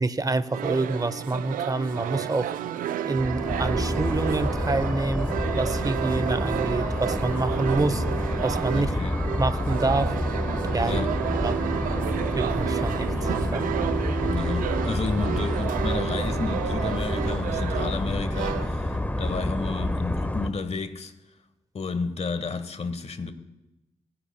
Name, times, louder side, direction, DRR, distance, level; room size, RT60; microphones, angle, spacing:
voice 1, 0.0-2.6 3.0-5.3 5.6-8.0 8.4-8.9 9.4-10.1 10.7-11.0 11.4-11.6 12.3-13.7, right 3 dB, 25° right, 0.9 m, -27 dB
sound 1, 0.5-19.0, right 11 dB, 85° right, 0.5 m, -31 dB
sound 2, 3.2-20.5, left 1 dB, 10° left, 1.1 m, -28 dB
voice 2, 8.7-9.2 10.9-11.1 14.2-21.1 21.7-23.3, left 4 dB, 50° left, 1.3 m, -31 dB
24.5 x 10.0 x 2.2 m
supercardioid pair, 40°, 14 cm